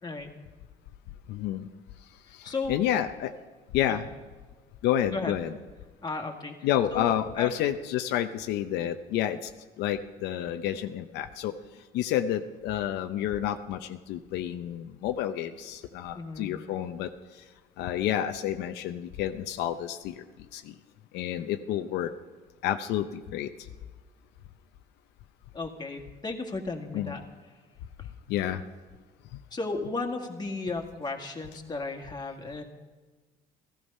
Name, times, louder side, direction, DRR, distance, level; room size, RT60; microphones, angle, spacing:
voice 1, 1.3-1.7 2.3-3.3 3.7-4.1 4.8-5.6 6.6-9.5 9.8-11.5 11.9-17.1 17.8-20.2 20.5-20.7 21.1-22.1 22.6-23.5 26.9-27.1 28.3-28.6, left 11 dB, 85° left, 7 dB, 0.7 m, -29 dB
voice 2, 2.4-2.8 3.9-4.0 5.1-5.3 6.0-6.6 6.9-7.5 16.1-16.5 25.5-27.2 29.5-32.6, left 3 dB, 25° left, 3 dB, 1.9 m, -34 dB
15.0 x 14.5 x 5.5 m, 1.4 s
cardioid pair, 110°, 17 cm